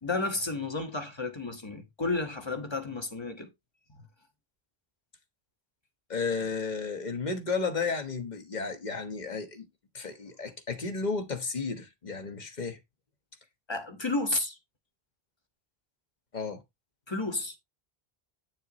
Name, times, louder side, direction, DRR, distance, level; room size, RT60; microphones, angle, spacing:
voice 1, 0.0-3.5 13.7-14.6 17.1-17.6, left 3 dB, 25° left, 1.4 m, -32 dB
voice 2, 6.1-9.6 9.9-12.8 16.3-16.6, left 4 dB, 45° left, 1.4 m, -33 dB
8.9 x 6.8 x 3.0 m
omnidirectional pair, 1.1 m